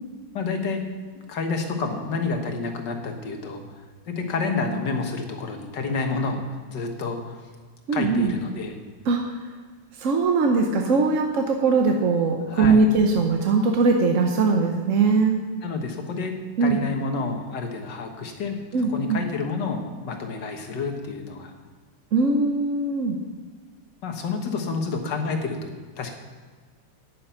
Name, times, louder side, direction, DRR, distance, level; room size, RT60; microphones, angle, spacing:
voice 1, 0.3-0.8 1.3-7.4 7.9-8.8 12.5-12.9 15.6-21.5 24.0-25.7 26.0-26.1, left 4 dB, 65° left, 4 dB, 2.0 m, -29 dB
voice 2, 7.9-8.3 9.1-9.4 10.0-15.4 16.6-16.8 18.7-19.2 22.1-23.2, right 4 dB, 55° right, 2 dB, 1.0 m, -21 dB
10.0 x 9.9 x 5.7 m, 1.5 s
omnidirectional pair, 2.0 m